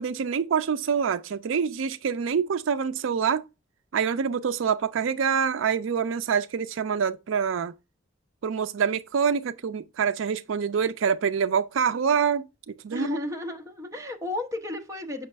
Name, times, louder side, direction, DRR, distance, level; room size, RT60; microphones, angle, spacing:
voice 1, 0.0-3.4 3.9-7.7 8.4-12.4 12.8-13.1, right 6 dB, 70° right, 0.4 m, -26 dB
voice 2, 12.9-15.3, left 2 dB, 15° right, 0.9 m, -33 dB
6.8 x 5.3 x 3.3 m
head